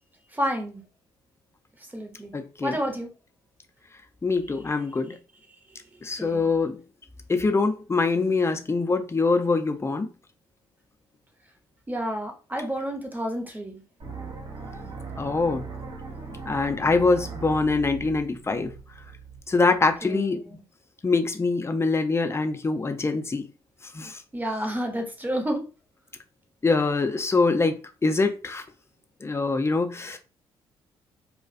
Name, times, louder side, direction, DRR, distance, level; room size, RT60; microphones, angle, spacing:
voice 1, 0.3-0.8 1.9-2.3 2.6-3.1 6.2-6.5 11.9-13.8 20.0-20.6 24.3-25.7, equal, 15° right, 3 dB, 0.8 m, -30 dB
voice 2, 2.3-2.7 4.2-5.2 6.0-6.8 7.3-10.1 15.2-15.7 16.5-18.7 19.5-20.4 21.0-23.5 23.9-24.2 26.6-28.6 29.2-30.2, left 3 dB, 20° left, 7 dB, 0.5 m, -24 dB
sound 1, 14.0-20.0, right 4 dB, 45° right, 0.6 m, -39 dB
2.3 x 2.1 x 2.5 m, 0.33 s
hypercardioid pair, 45°, 12 cm